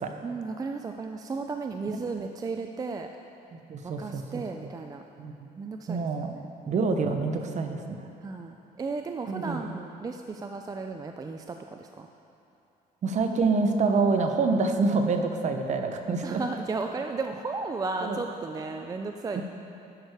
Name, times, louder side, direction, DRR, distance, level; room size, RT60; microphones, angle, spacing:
voice 1, 0.2-3.1 3.8-5.0 5.6-6.1 6.3-6.5 8.2-12.1 16.2-19.4, right 4 dB, 20° right, 4 dB, 0.4 m, -34 dB
voice 2, 3.7-4.7 5.2-5.3 5.9-6.3 6.7-8.1 9.3-9.7 13.0-16.4 18.0-18.2 19.4-19.5, right 4 dB, 45° right, 5 dB, 0.8 m, -27 dB
11.0 x 6.4 x 4.8 m, 2.8 s
cardioid pair, 110°, 17 cm